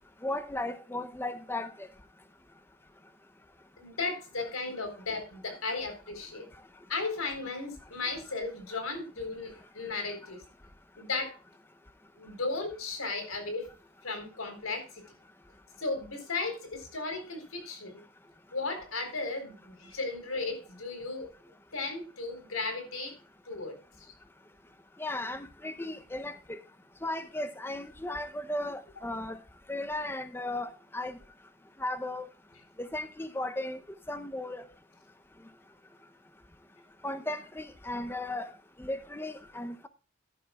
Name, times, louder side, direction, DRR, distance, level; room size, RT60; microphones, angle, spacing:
voice 1, 0.2-1.7 25.0-26.6 27.0-29.4 29.7-31.1 31.8-32.3 32.8-33.8 34.1-34.6 37.0-38.5 38.8-39.9, left 1 dB, 10° left, 0.6 m, -35 dB
voice 2, 3.8-6.5 6.9-10.4 11.0-11.4 12.2-13.7 14.0-15.0 15.8-18.0 18.5-21.3 21.7-23.2 23.5-24.1, left 3 dB, 90° left, 4.1 m, -35 dB
14.5 x 11.0 x 2.3 m
head